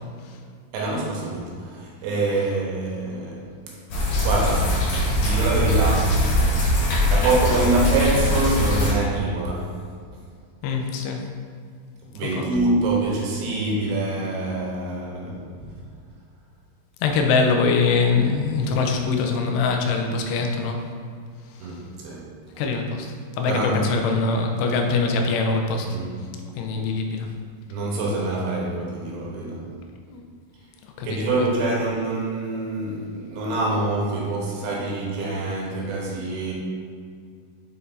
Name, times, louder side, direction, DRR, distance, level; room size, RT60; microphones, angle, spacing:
voice 1, 0.7-3.5 4.2-4.8 5.2-6.3 7.1-9.7 12.1-15.7 21.6-22.2 23.5-23.9 25.8-26.1 27.7-29.7 31.0-36.5, right 2 dB, 80° right, -3 dB, 2.9 m, -25 dB
sound 1, 3.9-8.9, left 1 dB, 60° left, 2.6 m, -21 dB
voice 2, 10.6-11.2 12.2-12.3 17.0-20.8 22.6-23.1 23.4-25.9 26.6-27.3 30.1-30.2 31.0-31.1 31.4-31.5, left 4 dB, 85° left, 3 dB, 2.8 m, -23 dB
7.4 x 5.6 x 2.7 m, 2.1 s
omnidirectional pair, 4.8 m